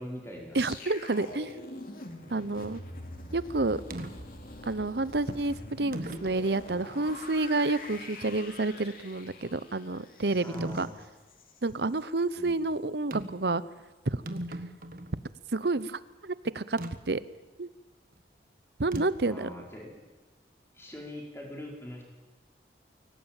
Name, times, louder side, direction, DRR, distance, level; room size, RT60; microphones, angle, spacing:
voice 1, 0.0-0.6 1.2-1.4 10.4-10.9 12.4-12.6 19.3-19.9 20.7-22.0, equal, 15° left, 0 dB, 4.7 m, -42 dB
sound 1, 0.5-11.6 12.0-12.2, left 2 dB, 55° left, 2.8 m, -45 dB
voice 2, 0.5-1.5 2.3-2.8 3.3-3.8 4.7-10.9 11.6-13.6 14.1-14.4 15.5-16.8 17.1-17.2 17.6-17.7 18.8-19.5, right 2 dB, 70° right, 17 dB, 0.9 m, -29 dB
sound 2, 3.9-4.1 5.1-5.2 5.9-6.5 7.1-7.2 10.5-11.0 13.1-13.5 13.8-13.9 14.1-15.2 16.8-16.9 18.9-19.3, right 1 dB, 50° right, 1.7 m, -38 dB
23.5 x 18.0 x 9.0 m, 1.2 s
head